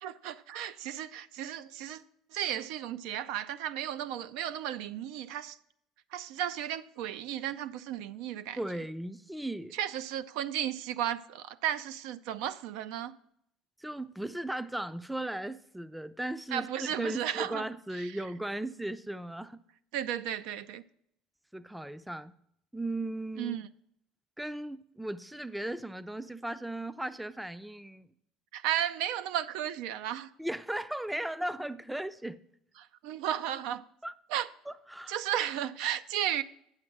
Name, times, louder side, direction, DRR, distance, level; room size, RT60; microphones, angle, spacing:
voice 1, 0.0-2.0 2.3-5.6 6.1-8.6 9.7-13.1 16.5-17.6 17.9-18.2 19.9-20.8 23.4-23.7 28.5-30.3 32.8-33.8 34.3-34.5 35.1-36.4, right 10 dB, 75° right, 0.4 m, -34 dB
voice 2, 8.6-9.7 13.8-19.6 21.5-22.3 22.7-23.6 24.4-28.1 30.4-32.4 34.0-34.1 34.7-35.2, right 1 dB, 5° right, 0.4 m, -37 dB
8.4 x 6.5 x 6.0 m
supercardioid pair, 85°, 0 cm